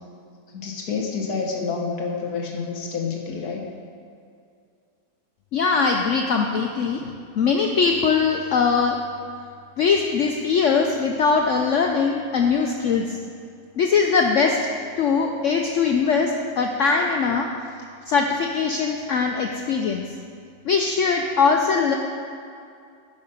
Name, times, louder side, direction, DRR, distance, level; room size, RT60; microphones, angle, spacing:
voice 1, 0.5-3.6, left 5 dB, 65° left, 1 dB, 1.4 m, -28 dB
voice 2, 5.5-9.0 9.8-13.2 13.8-14.6 15.0-17.5 18.1-20.1 20.6-21.9, left 5 dB, 80° left, 2 dB, 0.6 m, -21 dB
10.5 x 5.3 x 5.3 m, 2.4 s
omnidirectional pair, 1.9 m